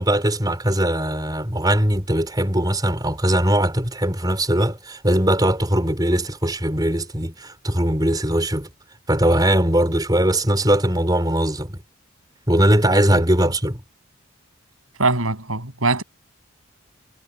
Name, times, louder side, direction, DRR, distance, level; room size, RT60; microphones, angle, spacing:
voice 1, 0.0-8.7 9.1-11.8 12.5-13.8, right 1 dB, 20° right, 5.4 m, -20 dB
voice 2, 15.0-16.0, right 3 dB, 80° right, 7.8 m, -21 dB
head